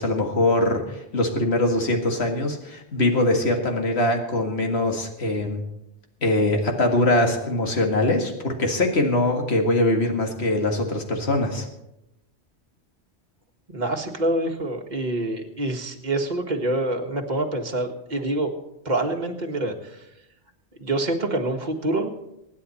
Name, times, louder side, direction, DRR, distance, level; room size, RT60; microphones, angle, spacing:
voice 1, 0.0-5.6 6.2-11.7, left 1 dB, 70° left, 2 dB, 2.2 m, -22 dB
voice 2, 13.7-18.5 18.9-20.0 20.8-22.1, right 2 dB, 40° right, 2 dB, 1.7 m, -26 dB
25.0 x 9.8 x 4.3 m, 0.88 s
omnidirectional pair, 1.1 m